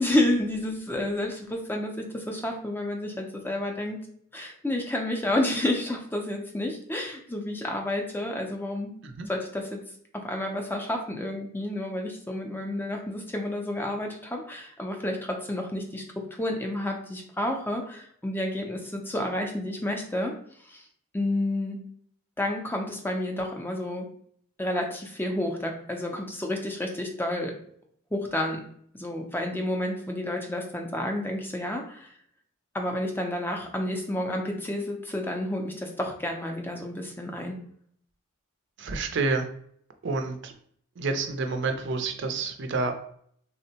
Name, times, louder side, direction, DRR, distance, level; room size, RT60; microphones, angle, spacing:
voice 1, 0.0-4.0 4.3-8.9 9.3-9.8 10.1-20.3 20.7-20.8 21.1-21.8 22.4-24.1 24.6-27.5 28.1-28.6 28.9-32.1 32.7-37.6, left 1 dB, 10° left, 2 dB, 0.4 m, -30 dB
voice 2, 38.8-39.5 40.0-40.5 41.0-42.9, right 3 dB, 55° right, 6 dB, 0.4 m, -28 dB
3.5 x 2.1 x 2.7 m, 0.62 s
head